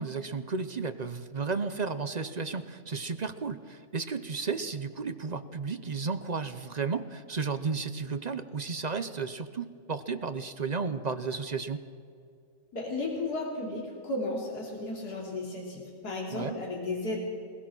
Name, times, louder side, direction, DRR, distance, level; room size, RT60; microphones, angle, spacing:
voice 1, 0.0-11.8 16.3-16.6, right 4 dB, 45° right, 10 dB, 0.5 m, -33 dB
voice 2, 12.7-17.2, left 2 dB, 80° left, -2 dB, 3.5 m, -34 dB
21.0 x 21.0 x 6.1 m, 2.4 s
omnidirectional pair, 1.7 m